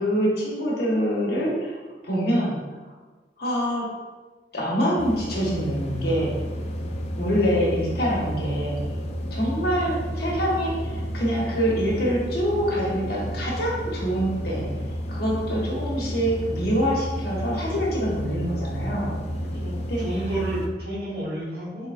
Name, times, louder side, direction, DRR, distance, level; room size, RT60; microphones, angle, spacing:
voice 1, 0.0-1.8 2.0-2.6 3.4-3.9 4.5-6.3 7.2-8.8 9.3-14.7 15.1-19.1 19.9-20.0, equal, 60° left, -4 dB, 1.0 m, -25 dB
sound 1, 5.0-20.7, equal, 40° left, 0.4 m, -31 dB
voice 2, 19.6-21.9, right 1 dB, 70° right, -11 dB, 0.9 m, -31 dB
4.1 x 3.4 x 2.4 m, 1.3 s
head